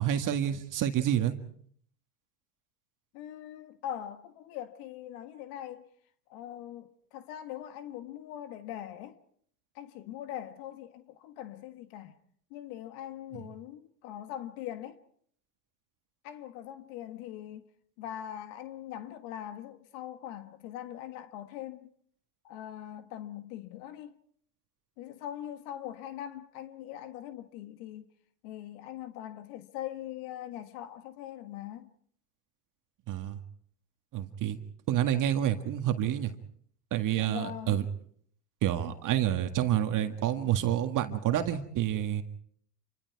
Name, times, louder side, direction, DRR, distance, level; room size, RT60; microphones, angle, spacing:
voice 1, 0.0-1.3 33.1-33.4 34.1-34.6 34.9-36.3 36.9-37.8 38.6-42.2, right 11 dB, 40° right, 1.9 m, -28 dB
voice 2, 3.1-5.8 6.3-9.2 9.7-12.2 12.5-15.0 16.2-17.7 18.0-21.9 22.4-24.1 25.0-28.1 28.4-31.9 37.1-37.9, left 11 dB, 60° left, 1.7 m, -42 dB
28.0 x 24.0 x 4.7 m
supercardioid pair, 110°, 48 cm